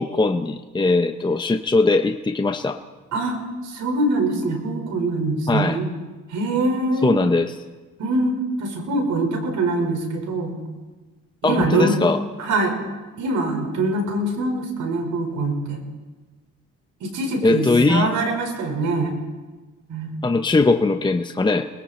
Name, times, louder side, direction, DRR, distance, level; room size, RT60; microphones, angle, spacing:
voice 1, 0.0-2.8 5.5-5.8 7.0-7.6 11.4-12.2 17.4-18.1 20.2-21.7, left 3 dB, 15° left, 7 dB, 0.8 m, -20 dB
voice 2, 3.6-5.9 6.3-7.1 8.0-10.6 11.4-12.0 12.4-12.7 13.2-15.8 17.0-19.1 19.9-20.1, right 2 dB, 75° right, 3 dB, 5.1 m, -23 dB
29.5 x 21.0 x 4.4 m, 1.2 s
cardioid pair, 90°, 30 cm